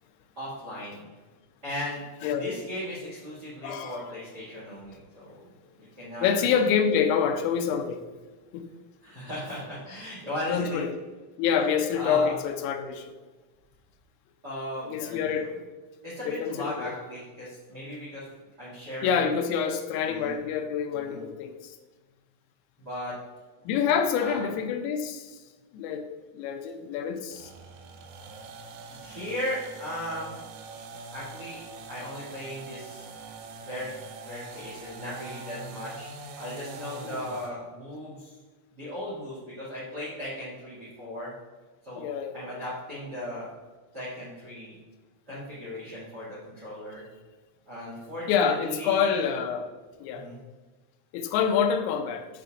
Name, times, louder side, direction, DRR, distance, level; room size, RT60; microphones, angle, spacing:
voice 1, 0.3-1.0 1.6-2.0 2.4-5.4 5.8-6.3 9.0-10.8 11.6-11.7 11.9-12.3 14.4-15.5 16.0-18.2 18.6-19.3 20.1-20.3 20.9-21.2 22.8-23.1 24.2-24.4 28.9-30.4 31.1-31.6 31.9-33.1 33.6-33.9 34.2-38.3 38.7-41.3 41.8-42.0 42.3-43.5 43.9-44.7 45.3-47.0 47.6-49.2 50.1-50.4, left 1 dB, 50° right, -8 dB, 1.2 m, -37 dB
voice 2, 3.6-4.2 6.2-8.0 8.5-8.6 10.5-11.0 11.4-13.1 14.8-15.6 16.3-17.0 19.0-21.8 23.7-25.4 25.7-26.1 26.3-27.5 37.0-37.2 42.0-42.4 48.3-49.7 50.0-50.3 51.1-52.3, left 7 dB, 85° left, 7 dB, 3.1 m, -27 dB
sound 1, 27.3-37.6, right 4 dB, 85° right, 3.2 m, -43 dB
8.0 x 6.6 x 2.5 m, 1.3 s
omnidirectional pair, 5.9 m